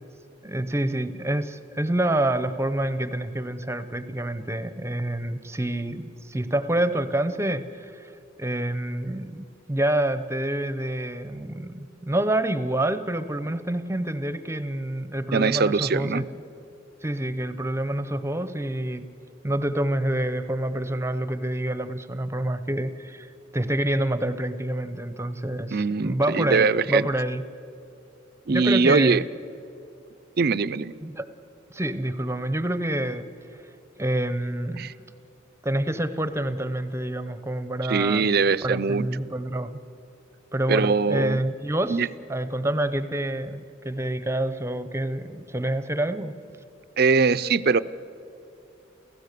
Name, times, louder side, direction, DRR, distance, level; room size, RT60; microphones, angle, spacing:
voice 1, 0.4-8.1 8.4-16.3 17.0-19.1 19.4-27.4 28.5-29.3 31.0-31.3 31.7-33.2 33.5-33.6 34.0-34.9 35.6-38.3 38.6-39.8 40.5-46.3, right 1 dB, 15° right, 12 dB, 0.8 m, -27 dB
voice 2, 15.3-16.2 25.7-27.1 28.5-29.2 30.4-30.9 34.8-34.9 37.9-39.0 40.7-41.4 41.9-42.1 47.0-47.8, right 4 dB, 55° right, 15 dB, 0.6 m, -22 dB
29.5 x 16.0 x 6.8 m, 2.8 s
head